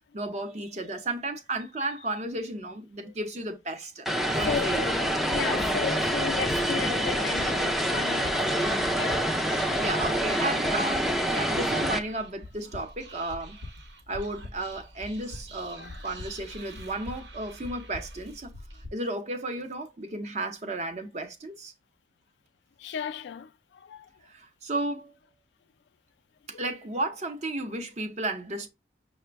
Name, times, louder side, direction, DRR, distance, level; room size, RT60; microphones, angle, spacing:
voice 1, 0.1-4.1 4.3-4.8 9.8-13.6 14.1-18.5 18.9-21.7 24.2-25.1 26.5-28.7, right 2 dB, 40° right, 0.7 m, -33 dB
Vehicle, 4.1-12.0, equal, ahead, 0.4 m, -26 dB
Whispering, 4.2-18.9, equal, 75° right, 1.0 m, -44 dB
voice 2, 4.4-9.3 15.8-16.0 22.8-24.1 26.5-26.6, left 7 dB, 70° left, 0.3 m, -35 dB
5.8 x 2.1 x 3.4 m
head